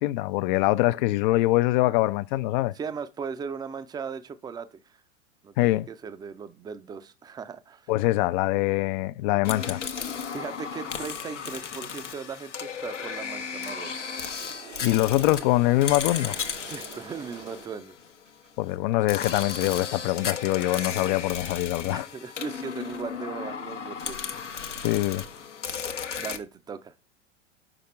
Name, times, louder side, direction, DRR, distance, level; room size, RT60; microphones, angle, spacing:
voice 1, 0.0-2.7 5.6-5.9 7.9-9.8 14.8-16.4 18.6-22.1 24.8-25.2, left 17 dB, 45° left, 0.4 m, -24 dB
voice 2, 2.7-5.0 5.4-7.9 10.3-14.0 16.6-18.0 21.9-24.6 26.2-26.9, right 6 dB, 10° right, 0.5 m, -38 dB
sound 1, 9.4-18.3 19.1-26.4, left 6 dB, 85° left, 0.9 m, -35 dB
Wind, 12.9-17.8 18.1-18.5 18.9-19.2, right 8 dB, 75° right, 1.0 m, -47 dB
6.0 x 5.0 x 3.2 m
figure-of-eight pair, 90°, 35 cm